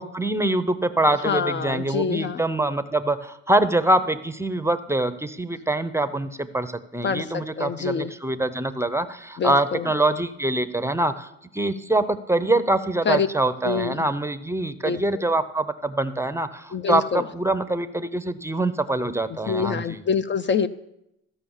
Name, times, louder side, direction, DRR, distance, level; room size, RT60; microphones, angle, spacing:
voice 1, 0.0-20.0, right 2 dB, 10° right, 12 dB, 0.6 m, -24 dB
voice 2, 1.2-2.4 7.0-8.1 9.4-9.9 13.1-13.3 13.6-14.1 14.8-15.2 16.7-17.3 19.3-20.7, left 6 dB, 40° left, 12 dB, 0.5 m, -26 dB
14.0 x 5.6 x 7.1 m, 0.84 s
cardioid pair, 90°, 30 cm